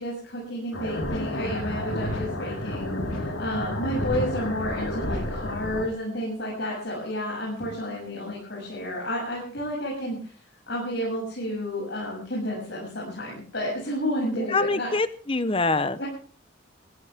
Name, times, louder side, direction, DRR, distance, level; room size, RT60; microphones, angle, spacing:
voice 1, 0.0-2.9 3.4-10.3 10.7-14.9 16.0-16.1, equal, 55° left, -4 dB, 7.5 m, -31 dB
sound 1, 0.7-5.8, left 1 dB, 75° left, 4.5 m, -30 dB
voice 2, 14.5-16.0, left 3 dB, 25° left, 14 dB, 0.9 m, -25 dB
21.5 x 16.0 x 3.6 m, 0.42 s
head